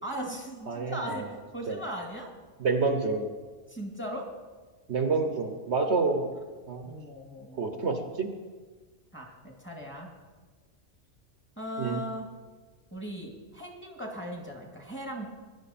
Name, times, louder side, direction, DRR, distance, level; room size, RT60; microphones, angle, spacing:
voice 1, 0.0-2.3 3.7-4.3 6.8-7.9 9.1-10.1 11.6-12.3 12.9-15.3, equal, 10° left, 0 dB, 2.1 m, -38 dB
voice 2, 0.7-1.2 1.7-1.8 2.6-3.3 4.9-6.3 6.7-6.9 7.5-8.3 11.8-12.0, right 4 dB, 60° right, 6 dB, 1.3 m, -28 dB
17.5 x 11.0 x 4.3 m, 1.4 s
omnidirectional pair, 1.3 m